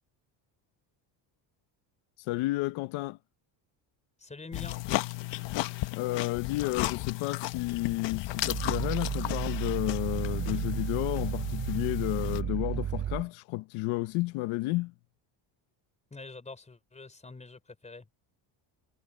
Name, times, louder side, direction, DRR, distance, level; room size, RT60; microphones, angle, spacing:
voice 1, 2.2-3.2 5.9-14.9, left 20 dB, 90° left, 1.0 m, -32 dB
voice 2, 4.2-4.8 16.1-18.1, left 3 dB, 15° left, 4.4 m, -45 dB
sound 1, 4.5-12.4, left 17 dB, 65° left, 1.2 m, -34 dB
Growling, 8.3-13.3, right 9 dB, 25° right, 0.4 m, -33 dB
cardioid pair, 140°, 47 cm